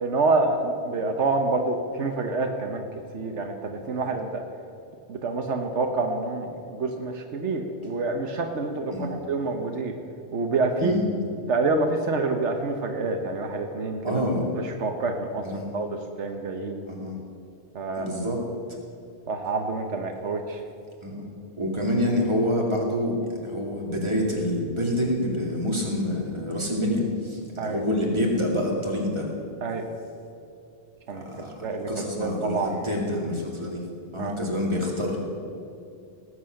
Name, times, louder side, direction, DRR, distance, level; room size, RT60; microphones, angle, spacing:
voice 1, 0.0-2.8 3.1-4.4 5.1-9.9 10.3-11.0 11.5-14.0 14.6-15.5 15.7-16.8 17.7-18.1 19.3-20.6 27.6-27.8 29.6-29.9 31.1-31.2 31.6-31.9 32.2-32.8 34.2-34.4, right 3 dB, 80° right, 4 dB, 1.3 m, -27 dB
voice 2, 14.0-14.4 15.4-15.7 16.9-17.2 18.0-18.4 21.0-21.3 21.6-29.3 31.1-33.9 34.1-35.2, left 1 dB, 25° right, -2 dB, 2.4 m, -27 dB
18.5 x 8.1 x 6.4 m, 2.6 s
omnidirectional pair, 1.2 m